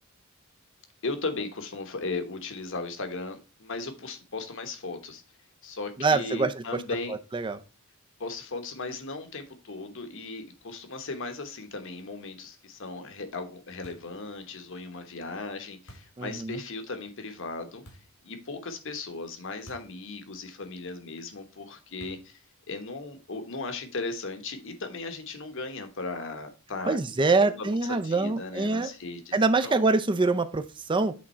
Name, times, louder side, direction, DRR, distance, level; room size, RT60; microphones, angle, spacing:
voice 1, 1.0-5.2 5.6-7.2 8.2-17.8 18.2-22.4 22.7-29.4 29.6-29.8, left 3 dB, 60° left, 1.2 m, -37 dB
voice 2, 6.0-6.8 7.1-7.6 16.2-16.6 26.9-28.9 29.3-31.1, right 3 dB, 20° right, 0.5 m, -25 dB
sound 1, 13.8-14.2 15.9-16.2 17.9-18.2 19.7-20.0 20.3-20.4 22.0-22.4, equal, 85° left, 2.7 m, -50 dB
8.4 x 3.7 x 4.4 m
head